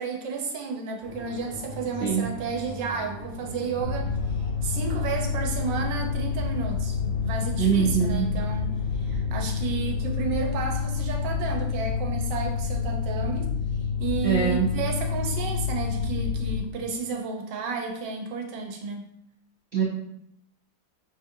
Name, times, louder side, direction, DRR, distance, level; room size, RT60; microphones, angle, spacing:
voice 1, 0.0-4.1 4.4-13.5 14.0-19.1, right 5 dB, 90° right, 3 dB, 1.4 m, -32 dB
sound 1, 1.0-10.1, equal, 50° left, 0.8 m, -39 dB
Mechanical fan, 3.8-16.6, left 6 dB, 90° left, 1.4 m, -28 dB
voice 2, 7.6-8.3 14.2-14.7 19.7-19.8, right 7 dB, 75° right, -3 dB, 0.6 m, -23 dB
6.3 x 2.5 x 2.6 m, 0.77 s
omnidirectional pair, 1.9 m